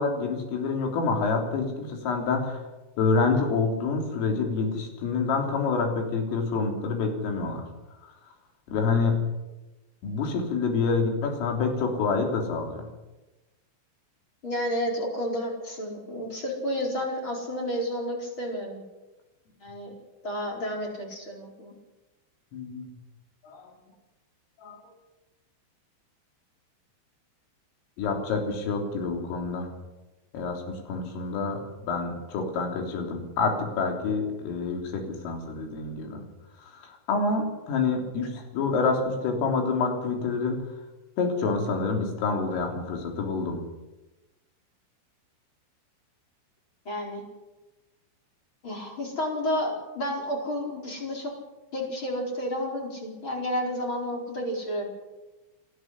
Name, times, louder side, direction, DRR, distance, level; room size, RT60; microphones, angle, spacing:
voice 1, 0.0-2.6 3.0-7.7 8.7-9.2 10.0-12.8 22.5-22.9 23.4-23.7 24.6-24.8 28.0-29.7 30.3-36.2 36.6-40.6 41.2-43.6, left 4 dB, 90° left, 3 dB, 6.2 m, -27 dB
voice 2, 14.4-18.8 19.6-19.9 20.2-21.7 46.8-47.2 48.6-51.3 51.7-54.9, equal, 25° left, 1 dB, 4.9 m, -31 dB
28.5 x 12.5 x 9.8 m, 1.1 s
omnidirectional pair, 5.7 m